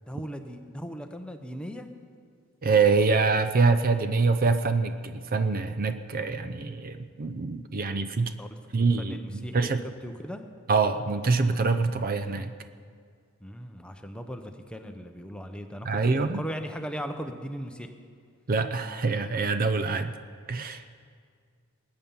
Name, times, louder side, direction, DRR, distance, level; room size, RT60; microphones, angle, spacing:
voice 1, 0.1-1.9 8.4-8.5 8.8-9.7 10.0-10.4 13.4-17.9, equal, 5° left, 6 dB, 0.7 m, -38 dB
voice 2, 2.6-8.3 8.7-9.8 10.7-12.5 15.9-16.4 18.5-20.1 20.5-20.8, right 4 dB, 45° right, 10 dB, 0.5 m, -25 dB
20.5 x 8.8 x 5.5 m, 2.1 s
head